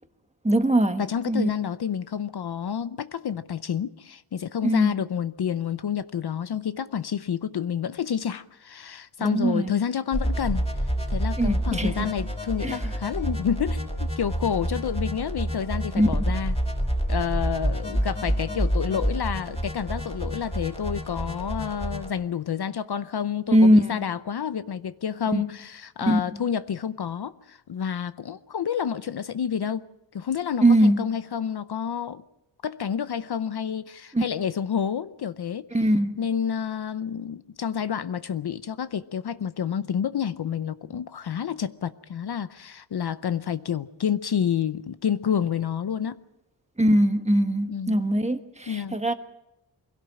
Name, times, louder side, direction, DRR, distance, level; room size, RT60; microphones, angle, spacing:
voice 1, 0.4-1.5 4.6-4.9 9.2-9.8 11.4-12.1 12.6-12.9 16.0-16.1 23.5-24.0 25.3-25.4 26.1-26.2 30.6-31.0 34.1-34.2 35.7-36.2 46.8-49.1, right 1 dB, 15° right, 1.3 m, -21 dB
voice 2, 1.0-10.7 11.1-16.5 17.1-29.9 30.1-32.2 32.6-35.7 36.2-46.2 47.7-48.0 48.7-49.1, left 8 dB, 55° left, 0.7 m, -29 dB
sound 1, 10.1-22.1, equal, 10° left, 5.1 m, -28 dB
24.0 x 17.0 x 7.6 m
wide cardioid pair, 140°, 47 cm